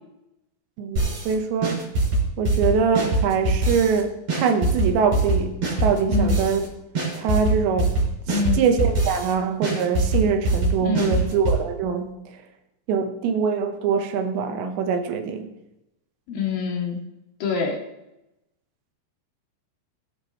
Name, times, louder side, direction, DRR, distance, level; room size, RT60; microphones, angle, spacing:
voice 1, 0.8-1.8 2.4-6.7 7.1-12.2 12.9-15.5, right 6 dB, 75° right, 3.2 m, -24 dB
sound 1, 1.0-1.3 1.6-4.0 4.3-6.7 7.0-9.3 9.6-11.6, right 2 dB, 35° right, 5.7 m, -23 dB
voice 2, 8.3-8.6 10.8-11.2 16.3-17.0 17.4-17.8, left 4 dB, 55° left, 3.2 m, -25 dB
21.0 x 10.5 x 3.2 m
omnidirectional pair, 5.7 m